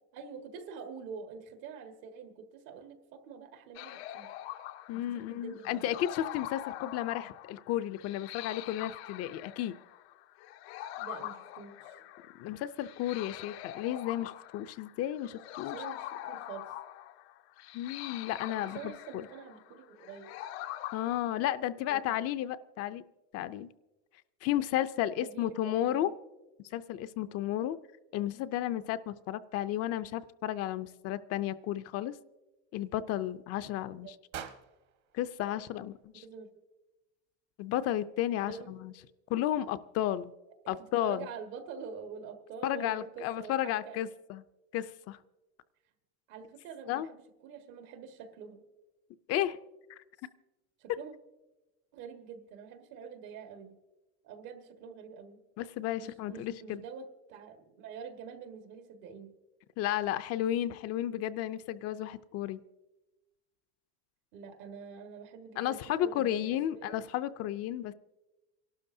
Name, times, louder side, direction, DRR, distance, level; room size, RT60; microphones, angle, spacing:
voice 1, 0.1-4.3 5.1-6.0 11.0-12.0 15.7-16.7 18.4-20.3 21.9-22.0 25.2-26.1 34.0-34.1 36.2-36.5 38.4-38.7 40.6-40.7 41.0-44.0 46.3-48.6 50.8-51.1 51.9-53.7 54.2-55.4 56.0-59.3 64.3-67.0, right 6 dB, 75° right, 6 dB, 1.8 m, -46 dB
sound 1, 3.7-21.2, left 14 dB, 85° left, 0.7 m, -44 dB
voice 2, 4.9-9.7 12.4-15.8 17.7-18.8 19.1-19.3 20.9-23.0 23.3-23.7 24.4-26.1 26.7-27.8 28.1-32.1 32.7-34.2 35.1-36.2 37.6-38.9 39.3-40.3 40.7-41.3 42.6-44.4 44.7-45.2 46.9-47.1 49.3-49.6 49.9-50.0 55.6-56.8 59.8-62.6 65.6-67.9, left 12 dB, 50° left, 13 dB, 0.5 m, -33 dB
sound 2, 34.3-36.5, right 9 dB, 55° right, 1.3 m, -48 dB
28.5 x 12.0 x 2.7 m, 1.1 s
cardioid pair, 135°, 33 cm